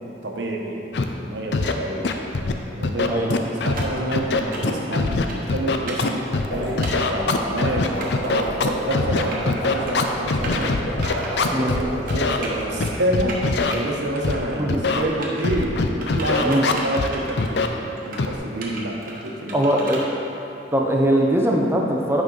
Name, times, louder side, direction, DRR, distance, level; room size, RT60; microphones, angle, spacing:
voice 1, 0.0-2.1 2.8-10.8 11.4-13.4 13.7-17.6 18.0-19.9, right 1 dB, 80° right, 0 dB, 0.9 m, -28 dB
Scratching (performance technique), 0.9-1.0 1.5-1.7 2.0-2.5 2.8-3.8 4.1-6.5 6.8-11.8 12.1-12.4 12.8-13.7 14.2-14.4 14.7-15.0 15.4-17.1 17.4-17.7 18.2-18.4, left 4 dB, 65° left, 0.5 m, -22 dB
voice 2, 3.1-3.4 11.5-11.7 14.6-14.8 16.4-16.7 19.5-20.0 20.7-22.2, right 1 dB, 15° right, 0 dB, 0.6 m, -20 dB
sound 1, 3.8-4.0 4.5-4.8 5.3-5.5 5.9-6.1 6.8-7.1 8.0-8.3 9.1-9.6 9.9-10.1 10.4-10.7 11.0-11.3 12.1-13.0 13.3-13.8 14.1-14.6 14.9-15.5 16.0-17.6 18.0-18.2 18.6-20.1, right 3 dB, 50° right, 1.0 m, -35 dB
sound 2, 6.2-12.9, equal, 90° left, 1.5 m, -31 dB
8.9 x 5.1 x 4.0 m, 2.9 s
head